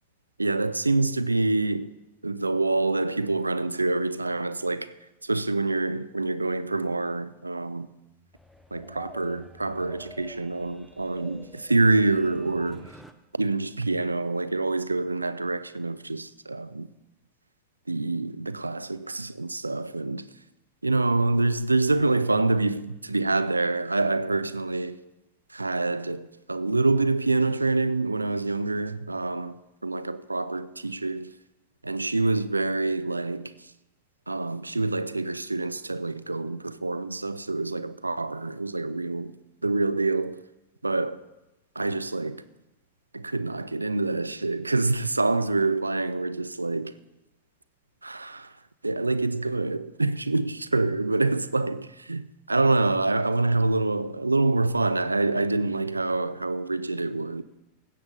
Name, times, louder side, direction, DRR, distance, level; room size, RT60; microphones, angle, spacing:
voice 1, 0.4-1.9 2.2-4.9 5.2-7.9 8.7-12.9 13.3-16.9 17.9-20.3 20.8-25.0 25.5-29.5 29.8-31.3 31.8-33.5 34.3-39.4 39.6-40.4 40.8-41.2 41.8-42.4 43.1-46.9 48.0-48.5 48.8-57.4, right 2 dB, 80° right, 0.4 m, -26 dB
sound 1, 8.2-13.1, equal, ahead, 0.7 m, -48 dB
16.5 x 7.1 x 3.8 m
figure-of-eight pair, 90°, 0 cm